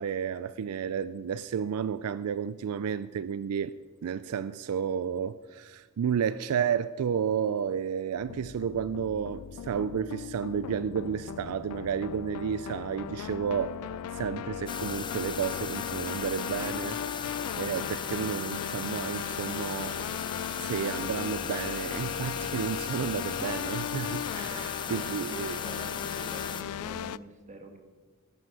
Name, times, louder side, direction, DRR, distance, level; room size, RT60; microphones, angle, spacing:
voice 1, 0.0-3.7 4.0-13.8 14.1-17.0 17.5-20.1 20.6-25.7, right 7 dB, 80° right, 0.4 m, -32 dB
sound 1, 8.2-27.2, left 9 dB, 75° left, 0.3 m, -37 dB
sound 2, 14.7-26.6, left 6 dB, 20° left, 0.5 m, -37 dB
voice 2, 24.5-27.8, right 1 dB, 35° right, 1.6 m, -47 dB
13.5 x 11.0 x 5.0 m
head